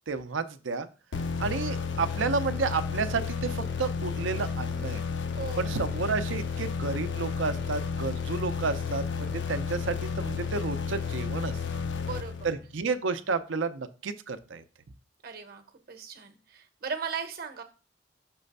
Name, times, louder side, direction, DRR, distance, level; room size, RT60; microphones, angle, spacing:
voice 1, 0.1-0.9 1.4-5.0 5.6-11.8 12.4-14.6, right 4 dB, 75° right, 10 dB, 0.6 m, -31 dB
sound 1, 1.1-12.8, left 5 dB, 65° left, 0.5 m, -32 dB
voice 2, 5.4-5.8 12.0-12.6 15.2-17.6, right 5 dB, 55° right, 7 dB, 0.9 m, -38 dB
6.1 x 3.3 x 5.3 m, 0.34 s
head